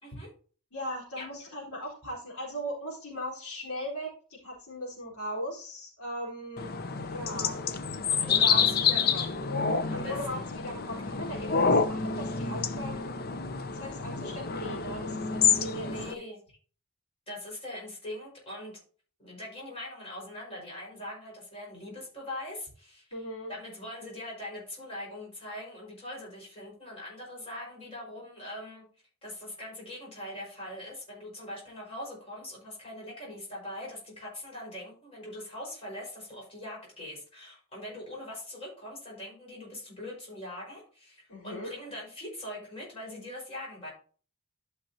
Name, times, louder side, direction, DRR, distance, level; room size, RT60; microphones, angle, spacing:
voice 1, 0.0-0.3 1.2-1.3 8.1-9.4 9.9-10.4 15.5-15.6 15.8-16.4 17.3-18.8 19.2-28.8 29.2-43.9, left 1 dB, 25° left, -3 dB, 4.9 m, -42 dB
voice 2, 0.7-6.7 7.0-7.7 8.4-8.6 9.9-13.1 13.7-16.2 23.1-23.5 41.3-41.7, equal, 80° left, -4 dB, 3.8 m, -38 dB
sound 1, 6.6-16.1, left 6 dB, 45° left, 0.6 m, -28 dB
12.0 x 5.9 x 2.8 m, 0.40 s
head